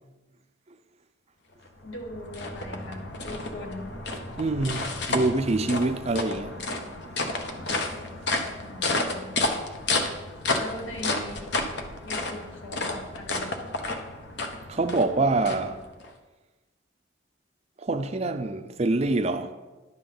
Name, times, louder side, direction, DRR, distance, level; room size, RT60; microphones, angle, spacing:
sound 1, 1.6-16.1, left 2 dB, 55° left, 0.9 m, -31 dB
voice 1, 1.8-3.9 8.6-9.6 10.5-11.5 12.0-13.6, left 1 dB, 80° left, 1.6 m, -40 dB
voice 2, 4.4-6.6 14.7-15.8 17.8-19.5, right 2 dB, 30° right, 0.4 m, -25 dB
11.0 x 3.7 x 6.9 m
head